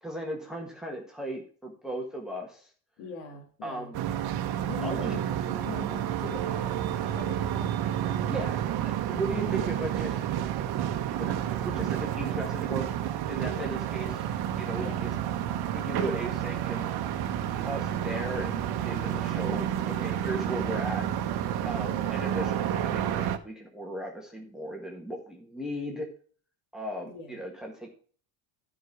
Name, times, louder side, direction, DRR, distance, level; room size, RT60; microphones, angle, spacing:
voice 1, 0.0-2.7 3.6-4.0 4.8-5.1 8.2-10.2 11.2-12.8 13.3-14.3 14.6-15.1 15.7-17.3 17.6-21.1 21.6-26.1 26.7-27.9, right 1 dB, ahead, 0 dB, 1.5 m, -37 dB
voice 2, 3.0-3.9 4.7-7.7 14.1-14.2 14.8-15.2 27.0-27.4, left 5 dB, 85° left, 2 dB, 2.4 m, -42 dB
sound 1, 3.9-23.4, right 10 dB, 55° right, 1.1 m, -30 dB
11.0 x 5.4 x 4.7 m, 0.43 s
cardioid pair, 130°, 44 cm